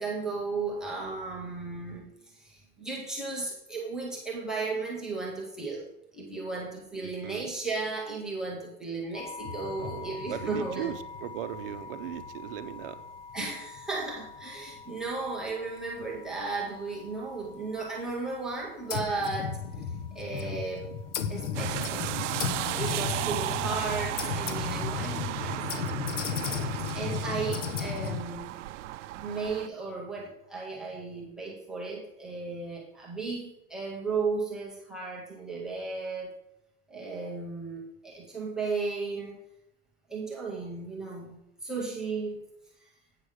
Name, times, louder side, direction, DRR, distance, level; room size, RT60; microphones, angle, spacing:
voice 1, 0.0-5.9 6.1-11.0 13.3-19.6 20.1-20.9 21.3-22.2 22.5-26.4 26.9-28.6 29.2-36.3 36.9-39.4 40.1-42.4 42.8-42.9, right 4 dB, ahead, -5 dB, 0.3 m, -35 dB
voice 2, 7.0-7.5 9.8-13.0, right 11 dB, 50° right, 10 dB, 0.6 m, -38 dB
sound 1, 9.1-24.1, left 4 dB, 55° left, 1.6 m, -47 dB
sound 2, 9.4-13.4 13.8-13.9 14.4-14.5 14.8-15.0 16.0-16.1 16.6-16.7 18.9-28.2, left 7 dB, 90° left, 1.0 m, -35 dB
sound 3, 21.5-29.7, right 15 dB, 85° right, 0.5 m, -35 dB
8.3 x 5.0 x 6.3 m, 0.86 s
supercardioid pair, 175°, 35 cm